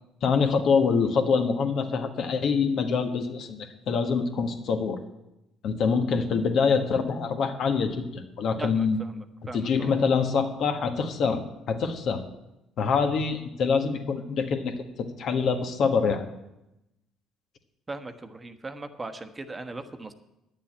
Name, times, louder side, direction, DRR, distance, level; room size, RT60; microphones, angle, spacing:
voice 1, 0.2-5.0 5.6-9.0 9.5-12.2 12.8-16.2, left 5 dB, 60° left, 5 dB, 1.4 m, -25 dB
voice 2, 8.6-9.9 17.9-20.1, right 3 dB, 25° right, 8 dB, 1.1 m, -39 dB
9.8 x 7.3 x 8.7 m, 0.92 s
supercardioid pair, 70°, 0 cm